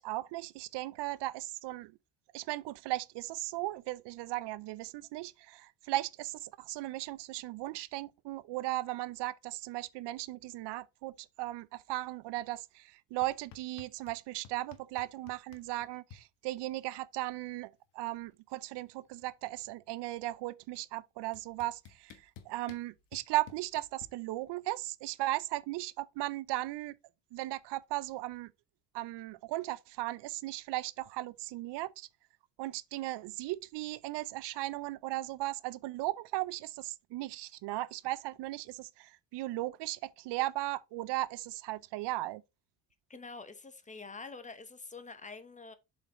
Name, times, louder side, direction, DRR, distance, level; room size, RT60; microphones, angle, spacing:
voice 1, 0.0-1.9 2.3-27.0 27.3-28.5 28.9-32.1 32.6-42.4, right 17 dB, 70° right, 0.6 m, -37 dB
sound 1, 13.2-14.2 14.4-16.2 17.5-17.6 17.8-18.2 18.5-19.9 20.8-20.9 21.3-24.1, left 8 dB, 75° left, 1.4 m, -54 dB
voice 2, 43.1-45.7, left 4 dB, 15° left, 0.9 m, -46 dB
7.2 x 5.3 x 3.0 m
cardioid pair, 115°, 43 cm